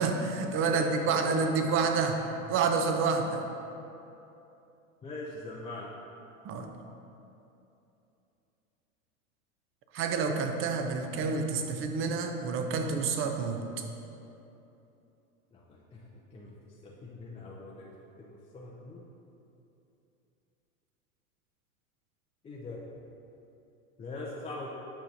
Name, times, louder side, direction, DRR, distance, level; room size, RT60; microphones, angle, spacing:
voice 1, 0.0-2.2 2.5-3.4 6.4-6.7 9.9-13.6, right 4 dB, 30° right, 5 dB, 0.6 m, -28 dB
voice 2, 0.7-1.4 5.0-5.9 15.5-19.0 22.4-22.8 24.0-24.7, left 2 dB, 15° left, -5 dB, 0.5 m, -43 dB
8.7 x 5.6 x 2.8 m, 2.9 s
hypercardioid pair, 100°, 41 cm